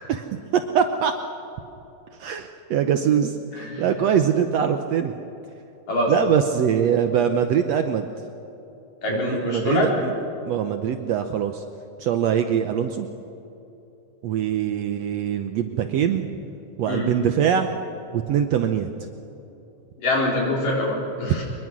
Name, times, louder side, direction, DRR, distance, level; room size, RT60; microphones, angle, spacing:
voice 1, 0.5-1.1 2.2-5.1 6.1-8.1 9.1-10.1 10.4-11.6 12.0-13.1 14.2-16.2 16.8-17.7 18.1-18.9, right 8 dB, 70° right, 7 dB, 1.6 m, -23 dB
voice 2, 9.0-9.9 16.1-16.2 16.9-17.1 20.0-21.4, left 1 dB, 80° left, -2 dB, 5.8 m, -24 dB
23.0 x 21.5 x 6.1 m, 3.0 s
omnidirectional pair, 3.8 m